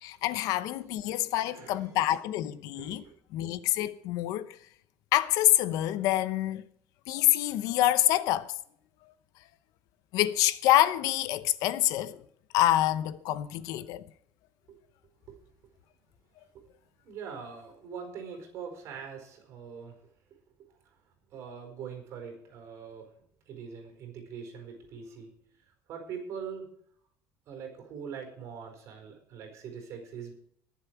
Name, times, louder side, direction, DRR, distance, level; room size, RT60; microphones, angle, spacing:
voice 1, 0.0-3.0 3.3-4.5 5.1-6.6 7.1-8.5 10.1-12.2 12.5-14.0, left 14 dB, 70° left, 0.8 m, -26 dB
voice 2, 1.1-2.0 2.7-3.1 14.7-14.8 15.3-15.4 16.5-16.6 17.0-20.1 21.3-23.1 23.5-25.3 25.9-26.7 27.5-30.3, right 6 dB, 50° right, 4.7 m, -43 dB
21.0 x 7.4 x 4.7 m
cardioid pair, 165°, 6 cm